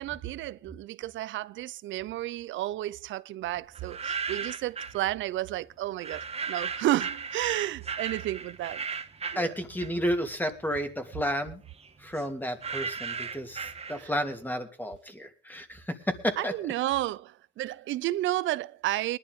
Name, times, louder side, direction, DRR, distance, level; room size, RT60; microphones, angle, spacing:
voice 1, 0.0-8.8 9.3-9.5 14.0-14.1 16.4-19.2, right 15 dB, 75° right, 0.6 m, -32 dB
sound 1, 3.8-5.0 6.0-10.2 10.6-14.3, right 5 dB, 30° right, 1.5 m, -36 dB
voice 2, 9.3-11.6 12.0-16.5, equal, 10° left, 2.8 m, -32 dB
20.0 x 11.5 x 3.7 m
cardioid pair, 80°, 20 cm